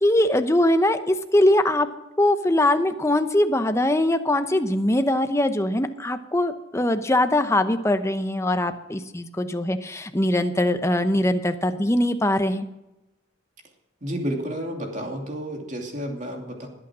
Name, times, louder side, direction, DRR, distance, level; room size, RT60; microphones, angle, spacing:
voice 1, 0.0-1.9 2.2-12.7, left 1 dB, 15° left, 9 dB, 0.8 m, -22 dB
voice 2, 14.0-16.7, equal, 40° right, 2 dB, 2.7 m, -31 dB
20.0 x 8.8 x 6.2 m, 0.97 s
head